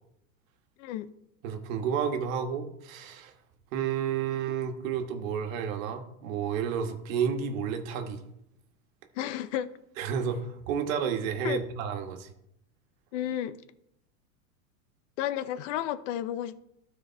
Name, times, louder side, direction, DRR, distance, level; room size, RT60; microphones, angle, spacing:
voice 1, 1.4-3.3 3.7-8.2 10.0-12.3, right 7 dB, 65° right, 1.5 m, -31 dB
voice 2, 9.2-9.7 11.4-11.6 13.1-13.6 15.2-16.6, left 11 dB, 60° left, 0.7 m, -32 dB
12.5 x 4.5 x 4.5 m
supercardioid pair, 130°, 43 cm